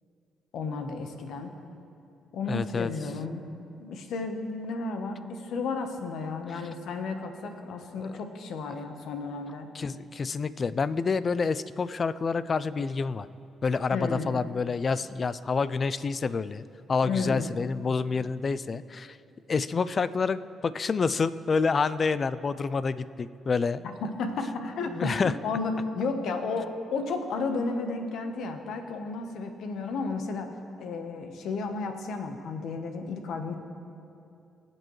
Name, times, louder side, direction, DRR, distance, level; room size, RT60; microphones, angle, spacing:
voice 1, 0.5-1.6 2.3-3.5 3.8-9.7 13.9-14.4 17.0-17.5 24.0-33.5, left 3 dB, 75° left, 6 dB, 1.1 m, -33 dB
voice 2, 2.5-2.9 8.0-8.2 9.7-13.3 13.6-19.2 19.5-23.8 24.9-25.3, left 4 dB, 40° left, 16 dB, 0.4 m, -28 dB
21.5 x 7.7 x 3.2 m, 2.6 s
cardioid pair, 90°, 0 cm